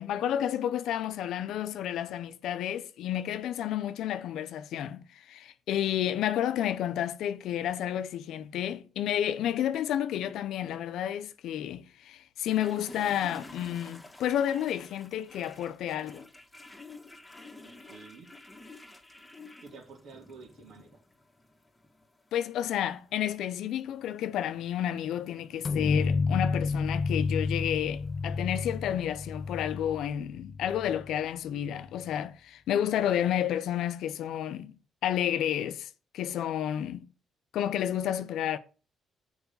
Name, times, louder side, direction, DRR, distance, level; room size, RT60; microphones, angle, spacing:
voice 1, 0.0-16.3 22.3-34.8 35.0-37.1 37.5-38.6, left 10 dB, 80° left, 0.6 m, -31 dB
sound 1, 12.4-29.5, left 2 dB, 15° left, 1.6 m, -52 dB
voice 2, 17.6-18.3 19.6-21.0, right 4 dB, 75° right, 2.9 m, -50 dB
sound 2, 25.6-31.2, left 4 dB, 40° left, 0.5 m, -30 dB
7.0 x 4.9 x 6.8 m
cardioid pair, 90°, 0 cm